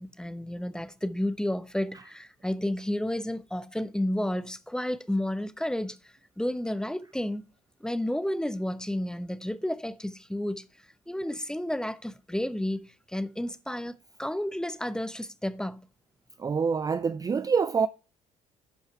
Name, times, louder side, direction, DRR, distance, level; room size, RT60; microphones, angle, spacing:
voice 1, 0.0-7.5 7.8-10.7 11.1-13.9 14.2-15.9, left 1 dB, 5° left, 0.8 m, -31 dB
voice 2, 16.4-17.9, right 5 dB, 20° right, 0.4 m, -26 dB
11.0 x 5.5 x 4.4 m
figure-of-eight pair, 50°, 19 cm